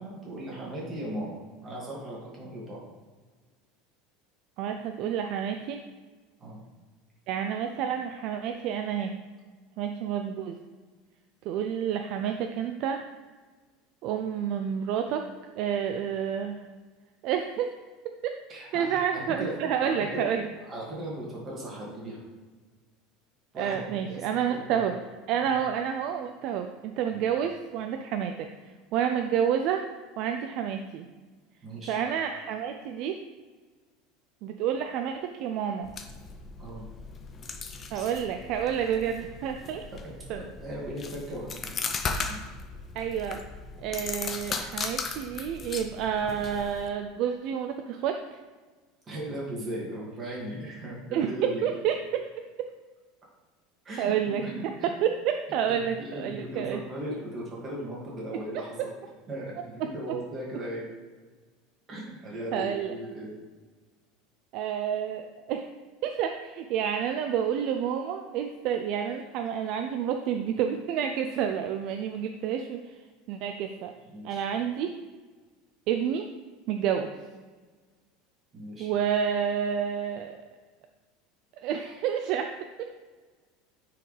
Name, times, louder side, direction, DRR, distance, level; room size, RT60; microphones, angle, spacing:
voice 1, 0.0-2.8 6.4-6.6 18.5-19.5 19.8-20.3 20.7-22.2 23.5-24.3 24.5-24.8 25.4-25.5 27.1-27.2 31.6-32.0 36.6-36.8 37.9-38.1 39.9-41.8 42.3-42.4 49.1-51.6 53.8-54.9 55.7-58.7 59.3-60.8 61.9-63.4 74.0-74.5 78.5-78.9, right 1 dB, 20° right, -4 dB, 2.1 m, -37 dB
voice 2, 4.6-5.8 7.3-9.2 9.8-10.6 11.5-13.0 14.0-15.3 15.6-16.7 17.2-17.7 18.0-18.4 18.7-20.5 23.6-24.9 25.3-28.5 28.9-29.9 30.2-31.1 31.9-33.2 34.4-35.9 37.9-39.9 40.3-40.5 42.9-43.4 43.8-48.4 51.1-52.2 54.0-56.8 58.5-58.6 62.5-62.9 64.5-65.7 66.0-72.8 73.3-73.9 74.2-74.9 75.9-76.3 76.7-77.1 78.8-80.4 81.6-83.0, right 8 dB, 45° right, 5 dB, 0.4 m, -29 dB
sound 1, 35.8-46.9, left 4 dB, 25° left, 0.6 m, -37 dB
9.5 x 4.7 x 3.3 m, 1.4 s
cardioid pair, 165°, 0 cm